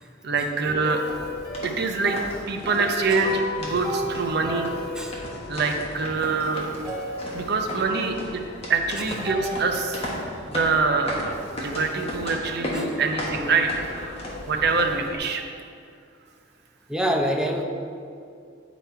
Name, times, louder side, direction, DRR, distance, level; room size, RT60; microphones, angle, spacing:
voice 1, 0.2-1.0 1.6-2.2 2.5-4.7 5.5-6.7 7.3-8.4 8.7-10.0 10.4-13.8 14.5-15.4, right 4 dB, 55° right, 4 dB, 0.7 m, -25 dB
sound 1, 0.6-6.4 6.8-8.0 9.2-11.4, equal, 20° right, 1.5 m, -35 dB
sound 2, 1.0-15.1, left 1 dB, 30° left, 1.2 m, -35 dB
voice 2, 16.9-17.6, equal, 5° right, 1 dB, 0.5 m, -25 dB
9.5 x 4.1 x 4.5 m, 2.3 s
head